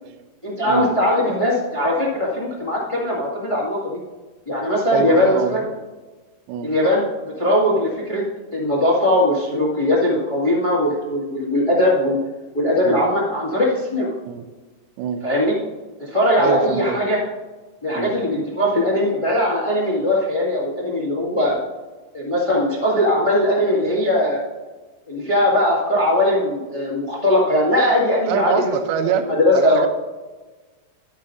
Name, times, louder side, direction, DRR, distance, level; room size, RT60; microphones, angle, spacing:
voice 1, 0.4-4.0 4.5-5.6 6.6-7.0 7.4-8.2 8.5-12.2 12.5-14.1 15.2-15.5 16.0-17.2 17.8-21.6 22.1-24.4 25.1-28.7 29.2-29.8, left 1 dB, 25° left, -6 dB, 0.7 m, -20 dB
voice 2, 4.9-5.7 6.5-6.7 12.8-13.0 14.3-14.5 15.0-15.2 16.4-17.0 18.0-18.2 28.3-29.9, right 8 dB, 75° right, 8 dB, 2.5 m, -25 dB
11.0 x 11.0 x 2.7 m, 1.2 s
omnidirectional pair, 4.9 m